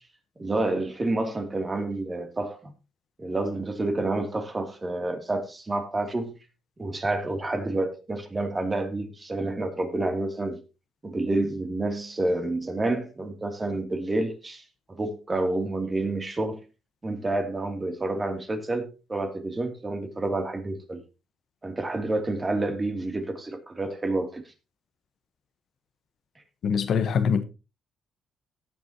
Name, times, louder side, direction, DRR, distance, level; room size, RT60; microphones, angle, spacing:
voice 1, 0.4-2.7 3.2-6.4 6.8-10.6 11.0-16.6 17.0-21.0 21.6-24.4, right 2 dB, 25° right, 2.8 m, -29 dB
voice 2, 26.6-27.4, left 6 dB, 65° left, 1.1 m, -23 dB
18.0 x 7.5 x 2.9 m
cardioid pair, 90°, 0 cm